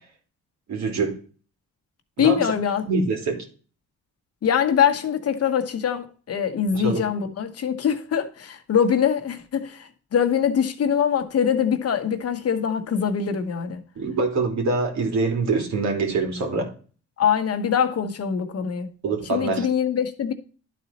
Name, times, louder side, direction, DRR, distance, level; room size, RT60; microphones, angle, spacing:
voice 1, 0.7-1.2 2.2-2.5 2.9-3.4 6.7-7.0 14.0-16.7 19.0-19.7, right 3 dB, 65° right, 2.7 m, -24 dB
voice 2, 2.2-2.9 4.4-13.8 17.2-18.9 19.3-20.3, left 7 dB, 55° left, 1.2 m, -23 dB
11.5 x 4.2 x 4.2 m
cardioid pair, 90°, 30 cm